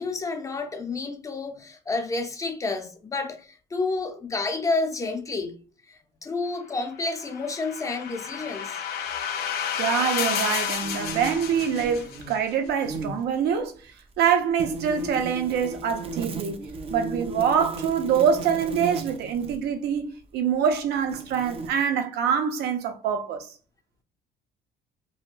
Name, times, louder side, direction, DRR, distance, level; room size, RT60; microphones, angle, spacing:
voice 1, 0.0-5.5 5.9-8.8, left 3 dB, 20° left, 0.6 m, -30 dB
sound 1, 7.1-12.3, left 8 dB, 75° left, 0.6 m, -31 dB
voice 2, 9.8-13.7 14.2-16.6 16.9-23.5, right 7 dB, 75° right, 0.6 m, -25 dB
sound 2, 10.8-12.3 12.6-13.2 14.6-19.6 20.5-20.6 21.1-21.7, right 3 dB, 35° right, 0.5 m, -35 dB
3.7 x 2.2 x 2.4 m
cardioid pair, 110°, 17 cm